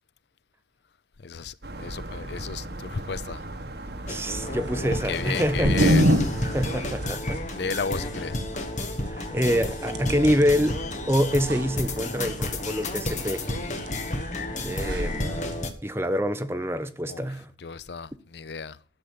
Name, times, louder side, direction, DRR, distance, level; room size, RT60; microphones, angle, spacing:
voice 1, 1.2-3.4 4.8-6.0 6.4-6.5 7.5-8.4 17.1-17.3 17.6-18.8, left 5 dB, 70° left, 0.6 m, -33 dB
sound 1, 1.6-7.2, right 1 dB, 65° right, 1.5 m, -37 dB
sound 2, 4.1-15.7, left 1 dB, 40° left, 1.6 m, -32 dB
voice 2, 4.1-5.8 6.5-7.4 9.1-10.8 11.1-13.5 14.2-14.3 14.6-15.4 15.8-17.5, equal, 15° right, 0.9 m, -26 dB
sound 3, 4.3-15.7, equal, 85° right, 2.1 m, -30 dB
12.0 x 7.0 x 7.7 m
head